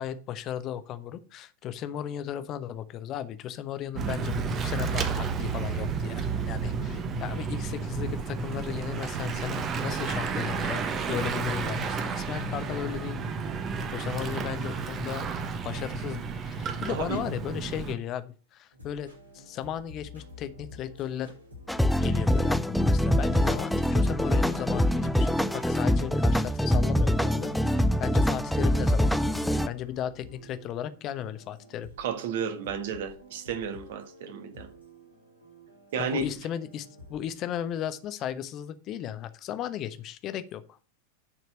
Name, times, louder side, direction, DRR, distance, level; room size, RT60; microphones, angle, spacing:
voice 1, 0.0-4.4 4.6-13.2 13.9-15.3 15.6-21.3 22.0-31.9 36.0-40.8, left 10 dB, 35° left, 0.9 m, -36 dB
Bicycle / Mechanisms, 4.0-17.9, right 5 dB, 25° right, 1.1 m, -31 dB
voice 2, 16.9-17.2 32.0-34.7 35.9-36.3, right 6 dB, 55° right, 1.5 m, -32 dB
sound 1, 18.7-37.3, left 2 dB, 80° right, 4.5 m, -50 dB
sound 2, 21.7-29.7, equal, ahead, 0.5 m, -24 dB
9.9 x 4.6 x 6.5 m
figure-of-eight pair, 90°, 0 cm